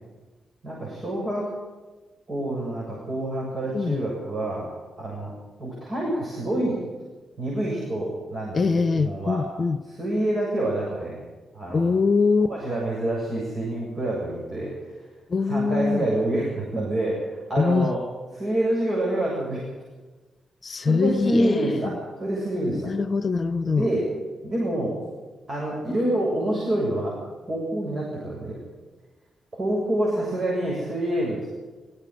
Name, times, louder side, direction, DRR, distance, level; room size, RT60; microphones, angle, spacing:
voice 1, 0.6-1.5 2.3-4.7 5.0-5.3 5.6-6.8 7.4-8.6 9.0-9.4 9.9-11.2 11.5-11.9 12.4-14.7 15.5-18.0 18.3-19.6 20.8-22.9 23.6-24.0 24.4-25.0 25.5-27.2 27.5-28.6 29.6-31.5, right 1 dB, 50° right, -4 dB, 7.7 m, -27 dB
voice 2, 8.5-9.8 11.7-12.5 15.3-16.1 17.6-17.9 20.6-21.9 22.9-23.8, left 4 dB, 50° left, 13 dB, 0.9 m, -23 dB
17.5 x 16.5 x 9.3 m, 1.3 s
supercardioid pair, 50°, 0 cm